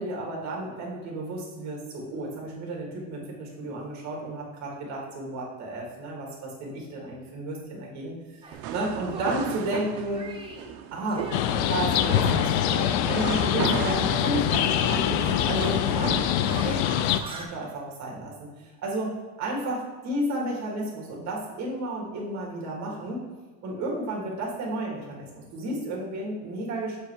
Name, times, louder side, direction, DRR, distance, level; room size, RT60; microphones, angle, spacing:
voice 1, 0.0-8.4 8.7-10.2 10.9-11.3 11.7-16.1 16.4-16.9 17.3-23.2 23.6-27.0, right 1 dB, 45° right, -2 dB, 1.9 m, -32 dB
Shatter, 8.4-8.6 9.1-9.7 10.1-10.7 11.1-11.7 12.0-14.2 14.5-17.5, right 3 dB, 15° right, 0.6 m, -40 dB
sound 1, 8.5-16.3, right 9 dB, 65° right, 0.6 m, -36 dB
sound 2, 11.3-17.2, left 11 dB, 75° left, 0.5 m, -24 dB
7.3 x 3.2 x 4.6 m, 1.3 s
cardioid pair, 155°, 38 cm